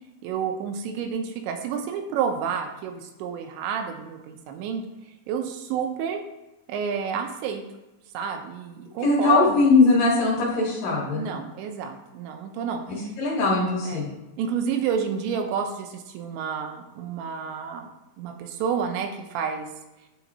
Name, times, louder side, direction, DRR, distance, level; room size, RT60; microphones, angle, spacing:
voice 1, 0.2-4.8 5.3-6.2 6.7-7.6 8.1-9.5 11.2-12.8 13.9-14.1 14.4-17.9 18.2-19.7, right 7 dB, 90° right, 4 dB, 3.1 m, -29 dB
voice 2, 9.0-11.3 12.9-14.1, left 3 dB, 60° left, -4 dB, 2.5 m, -21 dB
10.5 x 4.0 x 4.2 m, 1.0 s
omnidirectional pair, 5.1 m